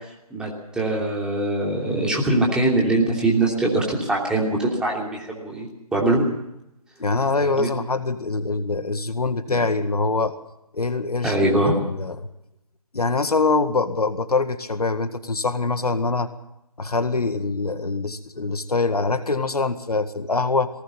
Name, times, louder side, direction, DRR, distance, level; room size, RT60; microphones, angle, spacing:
voice 1, 0.3-6.3 7.4-7.7 11.2-11.8, right 2 dB, 5° right, -2 dB, 3.0 m, -22 dB
voice 2, 7.0-10.3 10.7-11.3 11.8-12.2 12.9-16.3 16.8-20.7, left 3 dB, 75° left, 10 dB, 1.8 m, -24 dB
20.0 x 18.5 x 7.0 m, 0.84 s
figure-of-eight pair, 150°, 20 cm